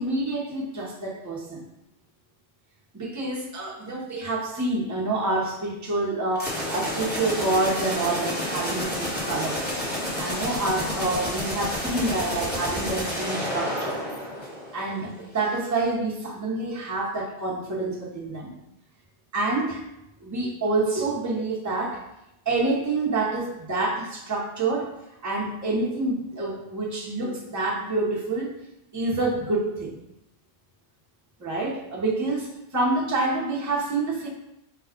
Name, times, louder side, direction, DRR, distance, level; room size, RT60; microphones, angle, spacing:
voice 1, 0.0-1.6 2.9-9.6 10.2-14.0 14.7-18.5 19.3-19.8 20.2-22.0 22.4-24.9 25.2-28.5 28.9-29.9 31.4-34.3, right 2 dB, 20° right, -5 dB, 0.7 m, -27 dB
sound 1, 6.4-15.0, left 1 dB, 10° left, 1.3 m, -30 dB
5.0 x 2.3 x 3.6 m, 0.86 s
omnidirectional pair, 1.1 m